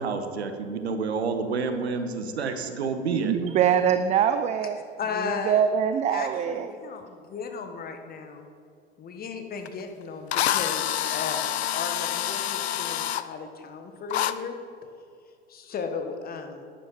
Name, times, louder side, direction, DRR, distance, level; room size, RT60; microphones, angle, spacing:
voice 1, 0.0-3.3, right 4 dB, 75° right, 8 dB, 1.2 m, -29 dB
voice 2, 3.1-4.8 5.2-6.7, right 8 dB, 20° right, 10 dB, 0.4 m, -24 dB
voice 3, 5.0-5.7 6.1-8.5 9.0-14.5 15.5-16.6, left 5 dB, 30° left, 5 dB, 1.3 m, -35 dB
Drill, 9.7-9.8 10.3-13.2 14.1-14.3, left 11 dB, 75° left, 0.5 m, -27 dB
11.0 x 10.5 x 4.2 m, 2.4 s
figure-of-eight pair, 85°, 32 cm